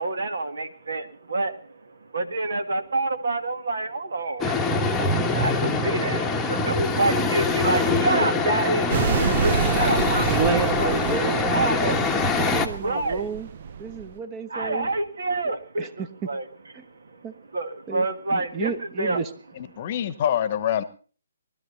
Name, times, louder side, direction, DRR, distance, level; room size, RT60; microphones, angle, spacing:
voice 1, 0.0-1.5 2.1-4.6 4.9-8.9 9.2-10.9 11.5-12.0 12.8-13.3 14.5-15.9 16.3-16.5 17.1-17.2 17.5-18.7 19.0-19.2, right 2 dB, 65° right, 8 dB, 2.0 m, -27 dB
sound 1, 4.4-12.7, left 3 dB, 5° left, 1.2 m, -24 dB
sound 2, 8.9-14.1, right 7 dB, 40° right, 0.7 m, -28 dB
voice 2, 10.2-11.5 12.1-13.5 13.8-14.9 15.8-16.1 16.7-16.8 17.2-17.3 17.9-18.0 18.3-19.3, right 6 dB, 20° right, 9 dB, 1.1 m, -31 dB
voice 3, 19.6-20.8, left 10 dB, 35° left, 15 dB, 1.1 m, -25 dB
20.0 x 12.5 x 4.1 m, 0.39 s
figure-of-eight pair, 140°, 0 cm